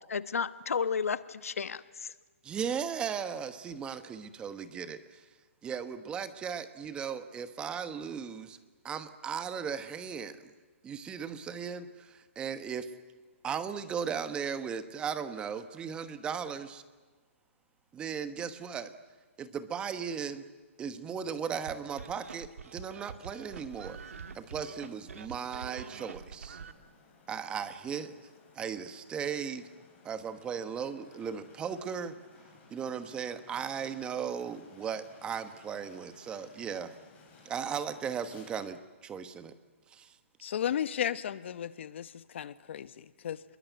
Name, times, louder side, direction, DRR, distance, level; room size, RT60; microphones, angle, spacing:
voice 1, 0.0-2.1, left 6 dB, 85° left, 14 dB, 1.2 m, -33 dB
voice 2, 2.4-5.2 5.6-8.6 8.8-10.4 10.8-12.9 13.4-16.8 17.9-18.9 19.4-20.4 20.8-24.0 24.3-26.6 27.3-28.2 28.6-29.6 30.0-32.2 32.7-36.9 37.4-39.5 39.9-40.1, right 7 dB, 15° right, 11 dB, 1.2 m, -37 dB
sound 1, 21.7-26.7, right 6 dB, 80° right, 1.9 m, -45 dB
sound 2, 23.7-38.7, left 4 dB, 20° left, 6.3 m, -59 dB
voice 3, 40.4-43.4, left 9 dB, 55° left, 14 dB, 1.2 m, -34 dB
29.5 x 21.5 x 9.3 m, 1.3 s
hypercardioid pair, 155°, 8 cm